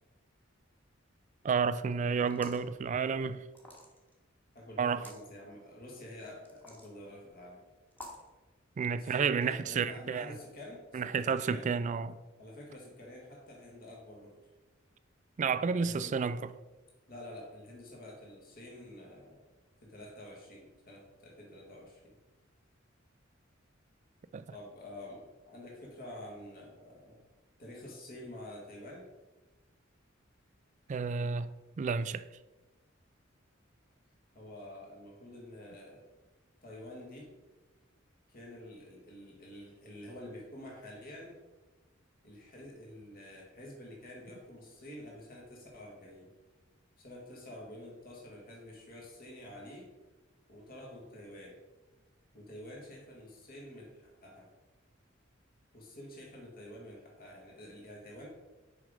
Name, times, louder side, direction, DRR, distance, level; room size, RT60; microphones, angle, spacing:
voice 1, 1.4-3.4 4.8-5.0 8.8-10.3 10.9-12.2 15.4-16.5 24.3-24.5 30.9-32.2, right 5 dB, 40° right, 0.3 m, -31 dB
sound 1, 2.2-2.7 3.5-4.1 4.9-5.2 6.5-6.9 7.9-8.3, left 1 dB, 10° left, 1.2 m, -49 dB
voice 2, 4.5-7.6 8.9-11.7 12.4-14.4 15.8-16.2 17.1-19.4 19.8-22.2 24.5-27.2 27.6-29.1 34.3-36.0 36.6-37.3 38.3-41.4 42.2-46.3 47.0-49.9 50.5-51.6 52.3-54.5 55.7-58.3, left 1 dB, 50° left, 1.7 m, -48 dB
6.3 x 5.2 x 4.9 m
head